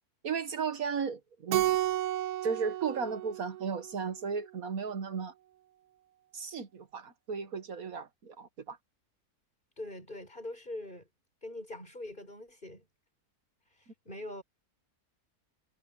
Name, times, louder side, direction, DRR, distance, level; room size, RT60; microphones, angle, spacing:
voice 1, 0.2-1.8 2.4-5.3 6.3-8.8, right 6 dB, 70° right, 1.8 m, -35 dB
Keyboard (musical), 1.5-4.1, right 14 dB, 90° right, 1.2 m, -32 dB
voice 2, 9.8-11.1 11.4-12.9 13.8-14.4, left 1 dB, 30° left, 6.6 m, -43 dB
omnidirectional pair, 1.6 m